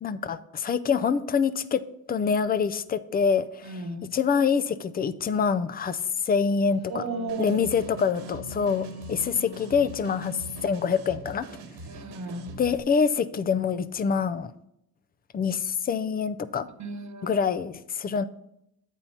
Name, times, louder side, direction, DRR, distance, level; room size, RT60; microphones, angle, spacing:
voice 1, 0.0-1.8 2.1-3.7 4.1-7.0 7.4-11.5 12.6-14.5 15.3-16.7 17.2-18.2, left 6 dB, 20° left, 14 dB, 0.3 m, -25 dB
voice 2, 3.6-4.1 6.9-7.6 11.8-12.5 16.8-17.3, right 3 dB, 35° right, 6 dB, 1.1 m, -34 dB
Wind instrument woodwind instrument, 6.8-11.0, left 2 dB, 80° left, 2.1 m, -43 dB
sound 1, 7.3-12.8, right 2 dB, 55° right, 1.3 m, -43 dB
8.5 x 4.5 x 5.5 m, 0.80 s
cardioid pair, 100°, 48 cm